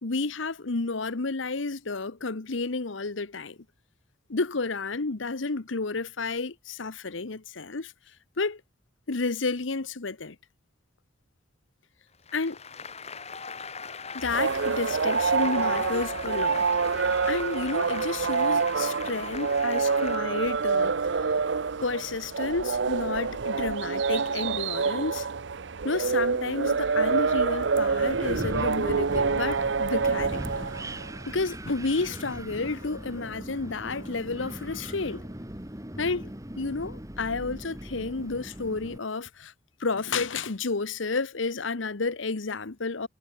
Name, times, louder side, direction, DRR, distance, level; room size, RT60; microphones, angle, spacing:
voice 1, 0.0-3.6 4.3-7.9 8.4-8.6 9.1-10.4 12.3-12.6 14.1-16.6 17.3-20.9 21.2-21.3 21.8-25.3 25.8-30.7 31.3-35.3 36.0-39.5 39.8-43.1, left 3 dB, 75° left, 1.1 m, -31 dB
Applause, 12.3-20.2, left 5 dB, 35° left, 4.4 m, -39 dB
sound 1, 14.2-31.2, right 5 dB, 65° right, 0.6 m, -27 dB
Wind, 28.0-39.0, right 1 dB, 15° right, 2.7 m, -39 dB
head